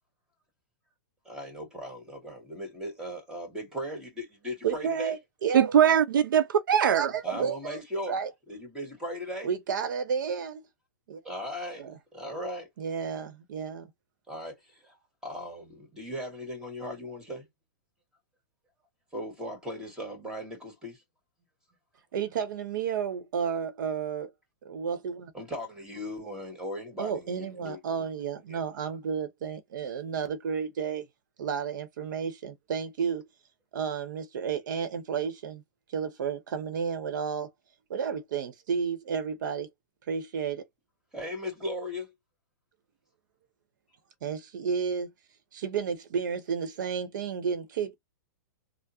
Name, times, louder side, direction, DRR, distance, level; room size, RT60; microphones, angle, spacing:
voice 1, 1.3-5.2 7.2-8.2 8.5-9.5 11.2-11.9 12.1-12.7 14.3-15.0 15.2-17.5 19.1-21.0 25.3-28.1 28.5-28.6 41.1-42.1, equal, 5° right, 1.8 m, -38 dB
voice 2, 4.6-5.7 6.9-7.8 8.1-8.3 9.4-10.6 11.1-11.2 11.8-11.9 12.8-13.9 22.1-24.3 24.6-25.3 27.0-31.0 31.4-33.3 33.7-35.6 35.9-37.5 37.9-39.7 40.1-40.7 44.2-45.1 45.5-48.0, right 6 dB, 70° right, 0.9 m, -32 dB
voice 3, 5.5-7.1, right 9 dB, 90° right, 0.5 m, -21 dB
3.5 x 2.1 x 2.8 m
hypercardioid pair, 145°, 11 cm